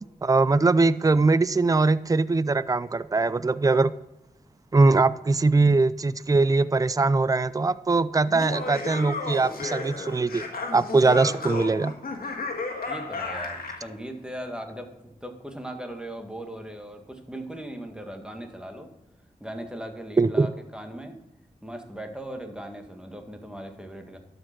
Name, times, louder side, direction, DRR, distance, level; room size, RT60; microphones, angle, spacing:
voice 1, 0.2-3.9 4.7-10.4 10.7-11.9 20.2-20.5, right 3 dB, 25° right, 16 dB, 0.4 m, -21 dB
Laughter, 8.3-13.9, left 3 dB, 85° left, 1.6 m, -33 dB
voice 2, 12.9-18.9 19.4-21.2 21.6-24.2, right 1 dB, 5° right, 4 dB, 1.8 m, -38 dB
12.5 x 5.2 x 5.9 m, 0.98 s
cardioid pair, 45°, 15 cm